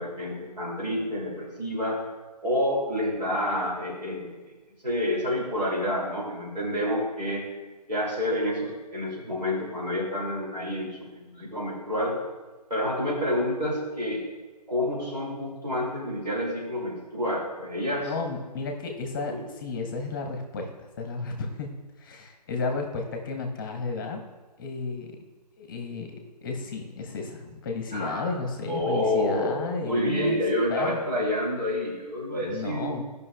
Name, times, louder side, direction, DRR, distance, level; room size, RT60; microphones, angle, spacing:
voice 1, 0.0-2.0 2.4-4.3 4.8-7.4 7.9-12.1 12.7-14.2 14.7-18.1 19.3-19.4 27.9-28.3 28.7-33.0, left 1 dB, 85° right, -3 dB, 2.5 m, -28 dB
voice 2, 18.0-20.7 21.0-21.7 22.0-24.2 24.6-25.1 25.6-26.1 26.4-30.3 30.7-31.0 32.4-33.0, left 4 dB, 30° left, 3 dB, 0.9 m, -33 dB
13.5 x 5.4 x 2.2 m, 1.3 s
figure-of-eight pair, 140°, 21 cm